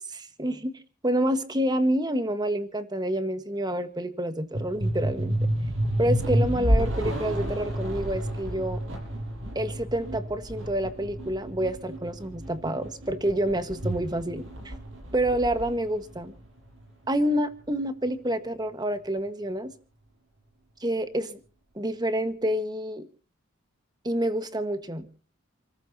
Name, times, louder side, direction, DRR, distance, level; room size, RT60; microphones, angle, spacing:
voice 1, 0.1-5.4 6.0-8.8 9.5-14.7 15.1-16.3 17.1-19.7 20.8-21.4 21.7-23.1 24.0-25.1, right 1 dB, 20° right, 9 dB, 1.5 m, -28 dB
sound 1, 4.5-17.1, equal, 70° right, 7.0 m, -30 dB
29.0 x 14.0 x 2.9 m, 0.38 s
head